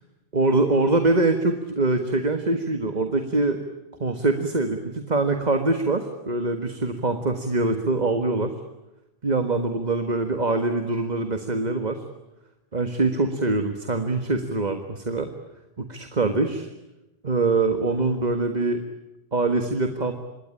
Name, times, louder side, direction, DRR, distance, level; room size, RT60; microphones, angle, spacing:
voice 1, 0.3-3.6 4.0-8.5 9.2-12.0 12.7-15.3 15.8-16.7 17.2-18.9 19.3-20.1, right 3 dB, 45° right, 7 dB, 1.7 m, -24 dB
26.5 x 22.0 x 9.8 m, 0.98 s
omnidirectional pair, 1.0 m